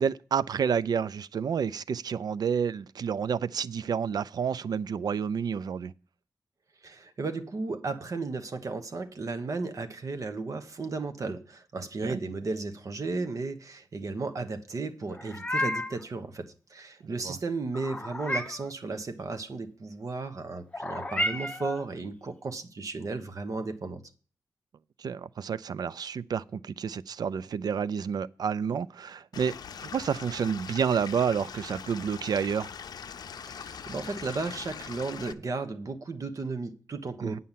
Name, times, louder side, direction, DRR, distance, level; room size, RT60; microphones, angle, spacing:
voice 1, 0.0-5.9 12.0-12.2 17.0-17.4 25.0-29.5 29.8-32.7 37.2-37.4, right 7 dB, 80° right, 0.4 m, -29 dB
voice 2, 6.8-24.0 33.5-37.4, right 3 dB, 55° right, 1.2 m, -34 dB
Meow, 15.1-16.0 17.7-18.7 20.7-21.8, left 1 dB, 15° left, 0.8 m, -32 dB
Stream / Liquid, 29.3-35.3, left 7 dB, 85° left, 0.5 m, -42 dB
9.5 x 5.6 x 7.4 m
wide cardioid pair, 120°, 7 cm